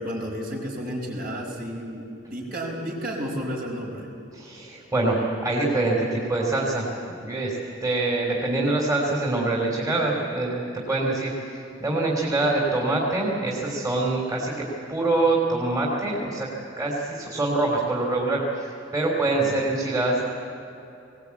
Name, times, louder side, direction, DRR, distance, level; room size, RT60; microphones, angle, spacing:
voice 1, 0.0-2.0 2.3-4.1 19.4-19.6, equal, 50° right, -1 dB, 5.0 m, -32 dB
voice 2, 4.3-6.8 7.2-7.5 7.8-16.5 16.8-18.4 18.9-20.2, right 2 dB, 20° right, -3 dB, 3.2 m, -25 dB
21.5 x 18.5 x 8.4 m, 2.9 s
head